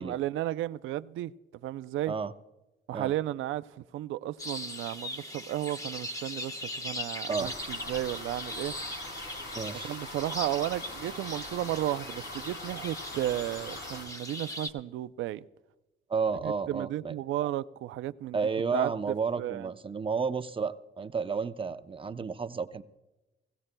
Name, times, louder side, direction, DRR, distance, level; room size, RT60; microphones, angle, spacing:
voice 1, 0.0-1.3 1.6-2.1 2.9-8.7 9.9-15.4 16.4-18.4 18.7-19.7, right 14 dB, 80° right, 0.5 m, -33 dB
sound 1, 4.4-14.7, left 1 dB, 15° left, 1.1 m, -40 dB
sound 2, 7.4-14.1, left 2 dB, 75° left, 5.9 m, -43 dB
voice 2, 9.5-9.9 16.1-17.1 18.3-22.8, right 5 dB, 25° right, 0.7 m, -32 dB
21.0 x 16.5 x 2.2 m
cardioid pair, 90°, 20 cm